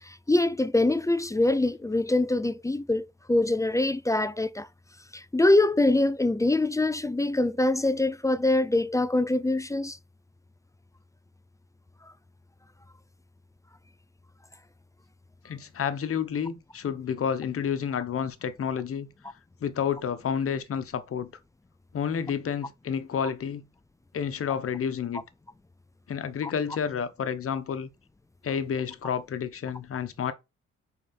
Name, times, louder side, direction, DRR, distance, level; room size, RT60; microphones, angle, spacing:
voice 1, 0.0-4.7 5.1-10.0 12.0-12.1 26.4-26.5, left 2 dB, 10° left, 0.4 m, -24 dB
voice 2, 15.4-19.1 19.6-21.3 21.9-23.6 24.1-25.2 26.1-27.9 28.4-30.3, left 7 dB, 50° left, 1.1 m, -30 dB
5.5 x 4.3 x 4.3 m
cardioid pair, 90°, 30 cm